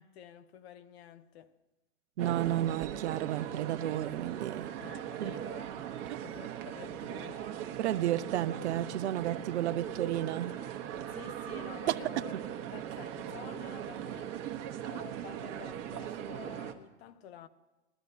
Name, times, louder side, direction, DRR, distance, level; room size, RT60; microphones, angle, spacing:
voice 1, 0.0-1.6 4.8-5.8 6.2-7.5 11.1-12.3 12.7-14.4 14.8-17.5, left 10 dB, 55° left, 1.0 m, -50 dB
sound 1, 2.2-16.7, right 10 dB, 40° right, 1.3 m, -39 dB
voice 2, 2.2-4.7 5.2-5.3 6.1-6.2 7.8-10.5 11.9-12.0, right 13 dB, 65° right, 0.6 m, -32 dB
21.0 x 12.0 x 2.8 m
figure-of-eight pair, 100°, 37 cm